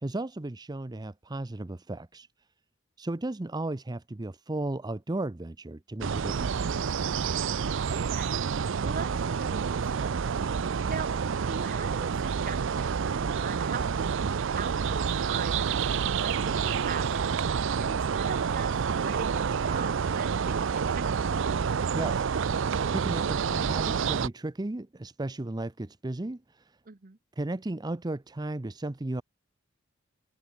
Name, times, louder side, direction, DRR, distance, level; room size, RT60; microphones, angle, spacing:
voice 1, 0.0-2.3 3.0-6.7 21.9-22.3 22.9-26.8 27.4-29.2, right 2 dB, 20° right, 0.6 m, -35 dB
sound 1, 6.0-24.3, right 6 dB, 65° right, 0.5 m, -28 dB
voice 2, 7.3-10.2 10.6-11.1 11.5-21.6 26.9-27.2, right 5 dB, 45° right, 1.0 m, -41 dB
head